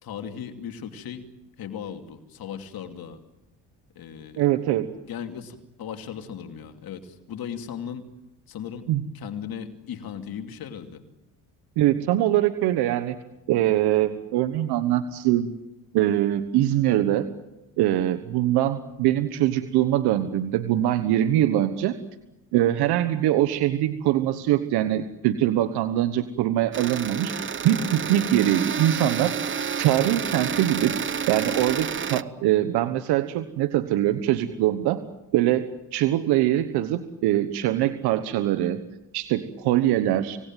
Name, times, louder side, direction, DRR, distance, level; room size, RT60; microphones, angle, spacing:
voice 1, 0.0-1.3 1.6-3.2 3.9-4.5 5.1-8.1 8.5-8.8 9.1-11.0, left 8 dB, 65° left, 6 dB, 2.8 m, -37 dB
voice 2, 4.4-4.9 8.9-9.0 11.8-13.2 13.5-15.5 15.9-17.3 17.8-21.9 22.5-29.4 29.8-30.9 31.3-35.0 35.3-38.8 39.1-40.4, right 13 dB, 90° right, 10 dB, 1.2 m, -23 dB
sound 1, 26.7-32.2, right 7 dB, 30° right, 0.8 m, -29 dB
26.0 x 18.5 x 9.1 m, 0.98 s
cardioid pair, 80°, 38 cm